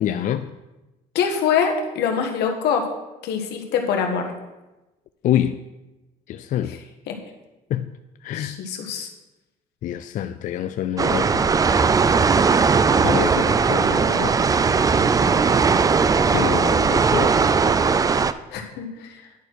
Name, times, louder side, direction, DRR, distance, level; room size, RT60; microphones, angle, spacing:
voice 1, 0.0-0.5 5.2-5.6 6.3-6.8 7.7-7.9 8.2-8.6 9.8-11.5 13.0-14.5 15.2-15.3 16.3-17.4, left 11 dB, 50° left, 10 dB, 0.4 m, -26 dB
voice 2, 1.1-2.8 3.2-4.2 7.1-7.2 8.3-9.1 18.5-19.3, left 7 dB, 80° left, 3 dB, 1.4 m, -24 dB
sound 1, 11.0-18.3, right 5 dB, 20° right, 0.3 m, -18 dB
10.0 x 4.5 x 6.2 m, 1.1 s
cardioid pair, 110°, 17 cm